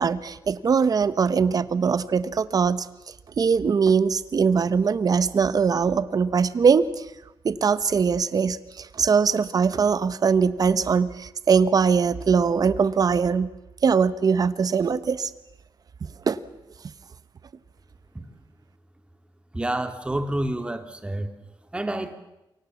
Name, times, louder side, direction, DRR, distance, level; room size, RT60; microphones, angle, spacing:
voice 1, 0.0-2.9 3.4-7.0 7.4-13.5 13.8-15.3 16.3-16.4, right 6 dB, 50° right, 14 dB, 1.1 m, -21 dB
voice 2, 19.5-21.3 21.7-22.1, right 1 dB, 10° right, 8 dB, 2.2 m, -28 dB
27.5 x 23.5 x 7.2 m, 0.93 s
wide cardioid pair, 150°, 8 cm